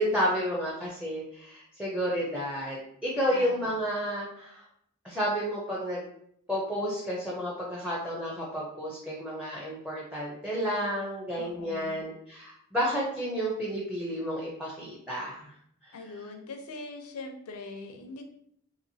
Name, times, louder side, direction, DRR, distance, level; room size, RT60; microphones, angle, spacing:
voice 1, 0.0-4.6 5.0-6.1 6.5-15.5 15.8-15.9, equal, 5° right, -5 dB, 0.5 m, -31 dB
voice 2, 3.3-3.8 11.3-12.0 15.9-18.3, left 3 dB, 85° left, 5 dB, 0.5 m, -42 dB
2.9 x 2.8 x 2.7 m, 0.71 s
head